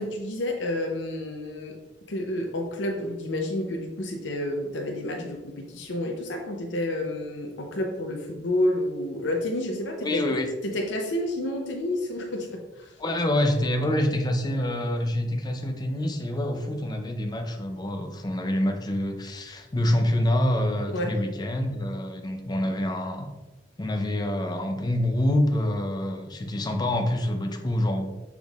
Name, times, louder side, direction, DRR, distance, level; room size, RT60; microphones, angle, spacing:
voice 1, 0.0-1.8 2.1-10.3 10.6-13.0 20.9-21.2, left 1 dB, 80° left, 2 dB, 0.6 m, -30 dB
voice 2, 10.0-10.5 13.0-23.3 23.8-28.1, left 1 dB, 25° left, 5 dB, 0.5 m, -26 dB
6.2 x 3.5 x 2.4 m, 1.1 s
head